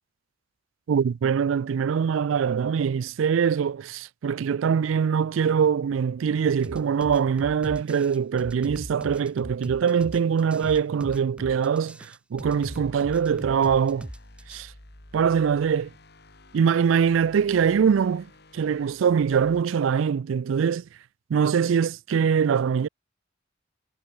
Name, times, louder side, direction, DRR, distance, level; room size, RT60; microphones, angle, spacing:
voice 1, 0.9-14.1 14.5-14.7 15.1-15.9 16.5-18.3 18.5-20.8 21.3-22.9, right 7 dB, 90° right, 0.4 m, -23 dB
sound 1, 6.6-14.6, equal, 5° right, 1.1 m, -40 dB
sound 2, 12.5-19.6, left 1 dB, 60° left, 4.4 m, -51 dB
head